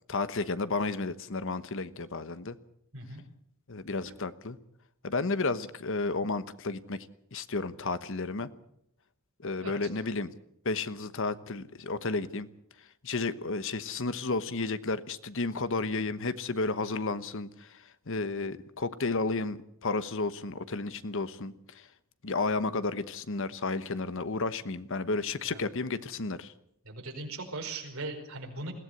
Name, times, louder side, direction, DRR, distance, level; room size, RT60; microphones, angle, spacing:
voice 1, 0.1-2.6 3.7-4.6 5.0-7.1 7.3-8.5 9.4-10.3 10.6-12.5 13.0-21.9 22.2-26.5, left 3 dB, 60° left, 13 dB, 1.1 m, -32 dB
voice 2, 26.8-28.7, right 2 dB, 70° right, 2 dB, 5.0 m, -39 dB
21.5 x 16.0 x 8.0 m, 0.75 s
head